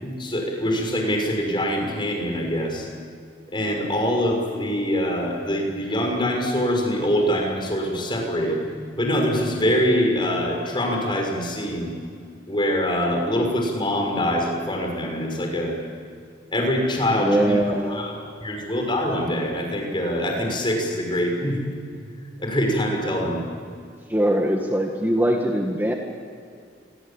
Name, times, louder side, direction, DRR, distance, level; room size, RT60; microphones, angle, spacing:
voice 1, 0.0-2.9 3.5-8.6 9.0-11.9 12.5-15.7 16.5-17.6 17.9-18.1 18.4-21.6 22.4-23.4, equal, 25° left, 1 dB, 6.2 m, -24 dB
voice 2, 17.2-18.3 24.1-25.9, right 1 dB, 10° right, 1 dB, 1.8 m, -22 dB
29.0 x 23.5 x 8.8 m, 2.3 s
head